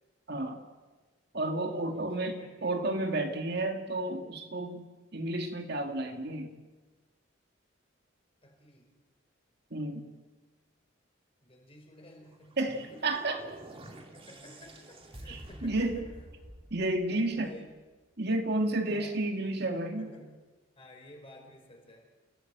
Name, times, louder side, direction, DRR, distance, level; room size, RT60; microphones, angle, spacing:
voice 1, 0.3-0.6 1.3-4.8 5.1-6.5 9.7-10.1 12.6-13.4 15.3-16.0 16.7-17.5 18.2-20.1, right 2 dB, 55° right, 4 dB, 2.3 m, -31 dB
voice 2, 1.6-2.8 8.4-8.9 11.4-13.0 14.1-16.2 17.1-17.7 18.9-19.3 19.7-20.3 20.7-22.1, left 1 dB, 30° left, 2 dB, 5.0 m, -52 dB
sound 1, 12.3-17.6, right 1 dB, 30° right, 2.7 m, -49 dB
29.0 x 16.5 x 8.1 m, 1.3 s
head